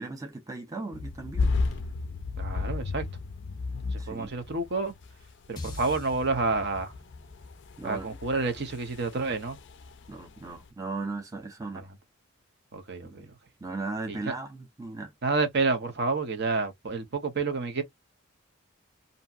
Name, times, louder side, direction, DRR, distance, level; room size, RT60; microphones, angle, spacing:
voice 1, 0.0-1.7 4.0-4.3 7.8-8.1 10.1-11.9 13.0-13.1 13.6-15.1, right 3 dB, 15° right, 0.5 m, -37 dB
sound 1, 0.9-10.7, left 3 dB, 55° left, 0.4 m, -34 dB
voice 2, 2.4-3.1 3.9-4.9 5.5-6.9 7.8-9.6 11.7-11.8 12.7-13.3 14.1-14.3 15.2-17.8, right 3 dB, 55° right, 0.7 m, -29 dB
sound 2, 5.6-9.9, left 3 dB, 20° left, 0.8 m, -44 dB
2.8 x 2.6 x 2.3 m
head